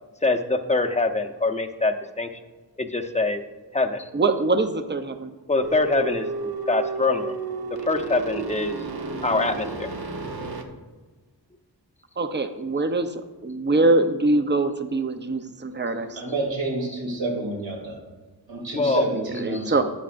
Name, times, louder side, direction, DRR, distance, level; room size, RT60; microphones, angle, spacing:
voice 1, 0.2-2.4 2.8-3.4 3.7-4.1 5.5-7.4 7.9-8.8 9.2-9.9 18.7-19.0 19.5-19.6, left 3 dB, 15° left, 6 dB, 0.8 m, -24 dB
voice 2, 4.1-5.3 12.2-16.2 19.1-19.8, right 2 dB, 25° right, 8 dB, 0.8 m, -23 dB
sound 1, 5.6-10.6, right 3 dB, 60° right, 1.1 m, -32 dB
voice 3, 16.2-18.0 18.5-19.8, right 2 dB, 85° right, -1 dB, 2.9 m, -29 dB
12.0 x 8.6 x 2.6 m, 1.3 s
wide cardioid pair, 65°, 43 cm